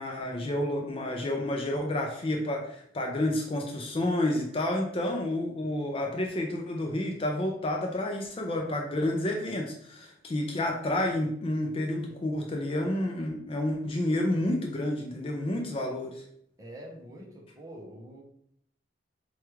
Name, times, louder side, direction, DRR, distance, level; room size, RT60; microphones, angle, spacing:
voice 1, 0.0-16.2, left 1 dB, 30° left, 2 dB, 0.4 m, -30 dB
voice 2, 16.6-18.2, right 1 dB, 15° right, -1 dB, 0.6 m, -45 dB
4.6 x 2.3 x 3.0 m, 0.68 s
head